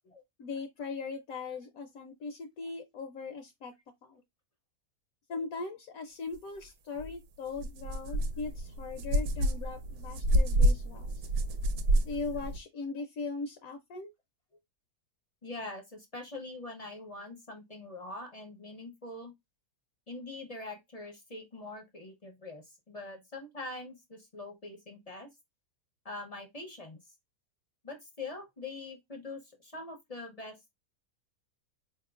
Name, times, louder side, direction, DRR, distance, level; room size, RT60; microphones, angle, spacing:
voice 1, 0.4-3.7 4.0-4.2 5.3-11.3 12.0-14.1, left 4 dB, 70° left, 1.0 m, -39 dB
sound 1, 7.0-7.1 7.5-12.6, right 1 dB, 80° right, 1.1 m, -28 dB
voice 2, 15.4-19.3 20.1-25.3 26.0-27.0 27.8-30.8, left 2 dB, 35° left, 0.6 m, -43 dB
4.4 x 2.9 x 2.3 m
omnidirectional pair, 1.6 m